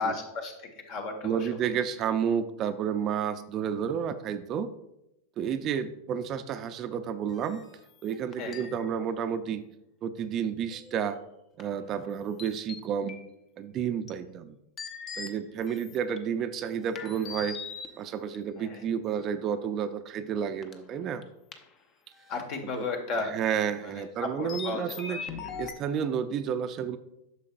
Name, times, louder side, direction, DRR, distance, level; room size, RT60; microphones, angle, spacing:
voice 1, 0.0-1.8 8.4-8.7 18.5-18.9 22.3-23.4 23.8-25.5, left 3 dB, 55° left, 4 dB, 1.6 m, -35 dB
voice 2, 1.2-4.7 5.4-7.6 8.0-9.6 10.0-11.2 11.6-13.2 13.6-14.6 15.2-17.6 18.0-21.2 22.8-22.9 23.3-25.2 25.6-27.0, right 8 dB, 40° right, 10 dB, 0.5 m, -31 dB
sound 1, 7.3-8.9 10.7-11.2 11.6-12.1 12.4-13.2 14.1-14.2 14.8-16.2 16.9-18.4 19.2-19.6 20.6-20.8 21.2-21.3 21.5-21.7 22.3-22.4 24.5-25.7, left 6 dB, 35° left, 0.8 m, -41 dB
8.6 x 6.3 x 2.5 m, 0.86 s
hypercardioid pair, 105°, 0 cm